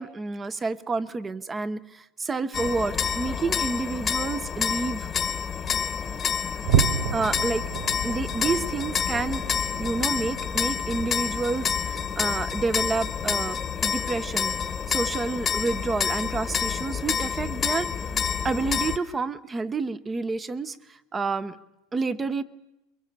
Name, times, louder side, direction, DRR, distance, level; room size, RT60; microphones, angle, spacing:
voice 1, 0.0-5.1 7.1-7.6 8.0-14.6 14.9-17.9 18.4-21.6 21.9-22.4, right 3 dB, 20° right, 15 dB, 1.0 m, -29 dB
sound 1, 2.5-19.0, left 7 dB, 25° left, 1.2 m, -28 dB
sound 2, 6.6-13.3 13.7-13.9 14.4-14.5 15.1-15.2, right 9 dB, 75° right, 0.9 m, -32 dB
23.0 x 22.5 x 6.9 m, 0.95 s
supercardioid pair, 130°, 0 cm